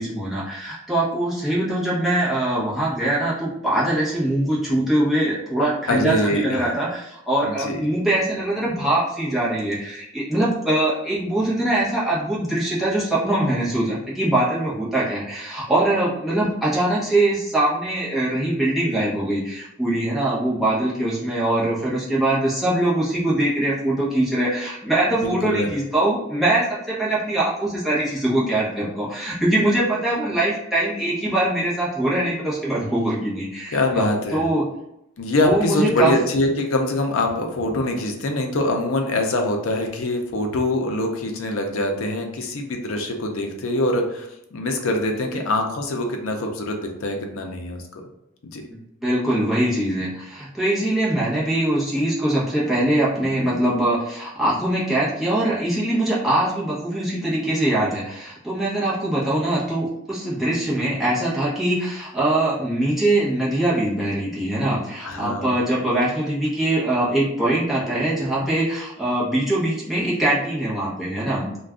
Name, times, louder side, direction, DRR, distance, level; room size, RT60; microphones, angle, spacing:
voice 1, 0.0-34.7 35.4-36.1 45.3-45.4 49.0-71.6, right 1 dB, ahead, -8 dB, 0.8 m, -22 dB
voice 2, 5.9-6.8 7.4-7.8 25.1-25.7 33.7-34.4 35.2-48.0 48.5-48.7 65.0-65.5, left 1 dB, 75° left, 3 dB, 0.5 m, -24 dB
2.4 x 2.2 x 3.5 m, 0.83 s
head